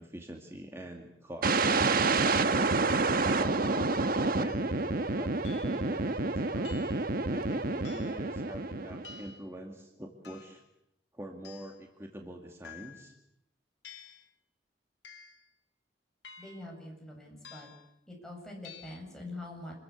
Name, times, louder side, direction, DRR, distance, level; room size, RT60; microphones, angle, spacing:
voice 1, 0.0-1.7 2.5-3.9 4.3-6.8 7.3-10.6 11.1-13.1, right 1 dB, 15° right, 2 dB, 2.2 m, -44 dB
sound 1, 1.4-9.3, right 3 dB, 50° right, 1.1 m, -28 dB
sound 2, 4.5-4.7 5.4-5.8 6.6-7.1 7.8-8.3 9.0-9.5 10.2-10.6 11.4-11.8 12.6-13.2 13.8-14.3 15.0-15.5 16.2-16.7 17.4-17.9 18.6-19.0, left 6 dB, 70° left, 3.2 m, -51 dB
voice 2, 16.4-17.7 18.1-19.8, left 1 dB, 5° left, -1 dB, 7.9 m, -44 dB
27.0 x 21.5 x 8.2 m, 0.80 s
head